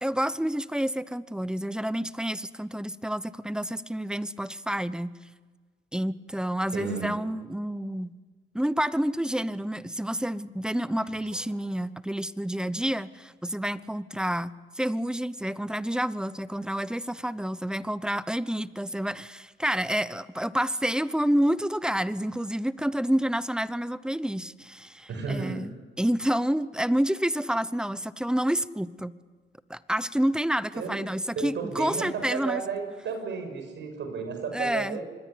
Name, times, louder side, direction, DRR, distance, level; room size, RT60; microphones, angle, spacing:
voice 1, 0.0-5.2 5.9-8.1 8.5-29.2 29.7-32.6 34.5-35.0, equal, 5° right, 16 dB, 0.8 m, -29 dB
voice 2, 6.7-7.1 11.3-11.4 25.1-25.7 30.7-31.0 31.4-35.0, right 5 dB, 65° right, 5 dB, 7.1 m, -33 dB
26.0 x 21.0 x 8.5 m, 1.5 s
cardioid pair, 90°, 20 cm